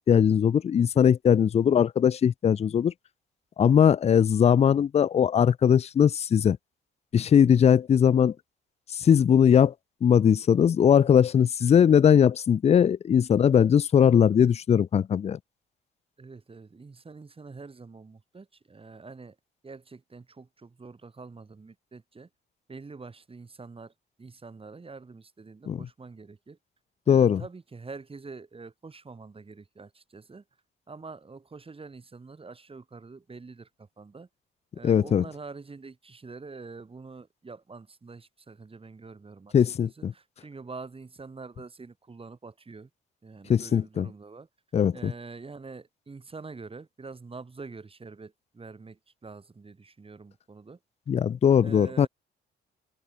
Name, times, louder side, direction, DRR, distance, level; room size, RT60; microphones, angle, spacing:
voice 1, 0.0-2.9 3.6-6.6 7.1-8.3 9.0-9.7 10.0-15.4 25.7-25.8 27.1-27.4 34.8-35.2 39.5-40.1 43.5-44.1 44.7-45.1 51.1-52.1, left 8 dB, 35° left, 0.4 m, -20 dB
voice 2, 16.2-19.4 19.6-22.3 22.7-23.9 24.2-26.6 27.0-30.4 30.9-34.3 34.7-39.5 39.8-42.9 43.2-44.5 44.9-50.8 51.6-52.1, right 4 dB, 30° right, 6.5 m, -45 dB
cardioid pair, 90°, 20 cm